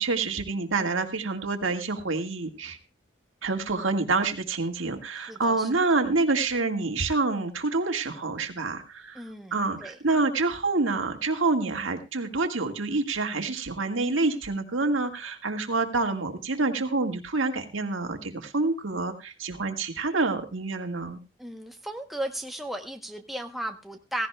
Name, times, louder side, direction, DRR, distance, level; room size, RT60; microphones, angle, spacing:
voice 1, 0.0-2.8 3.4-21.2, right 3 dB, 75° right, 5 dB, 1.8 m, -27 dB
voice 2, 5.3-5.7 9.1-10.0 21.4-24.3, right 1 dB, ahead, 4 dB, 0.8 m, -35 dB
16.5 x 16.0 x 2.2 m, 0.27 s
head